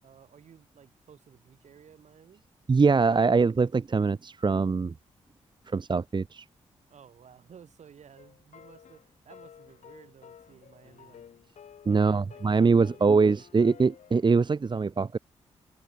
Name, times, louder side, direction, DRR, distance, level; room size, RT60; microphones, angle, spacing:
voice 1, 0.0-2.4 6.9-11.2 12.0-13.3, right 8 dB, 70° right, 7.1 m, -55 dB
voice 2, 2.7-4.9 5.7-6.4 11.9-15.2, right 4 dB, 40° right, 1.0 m, -23 dB
sound 1, 8.2-14.3, left 8 dB, 70° left, 5.9 m, -52 dB
supercardioid pair, 45°, 12 cm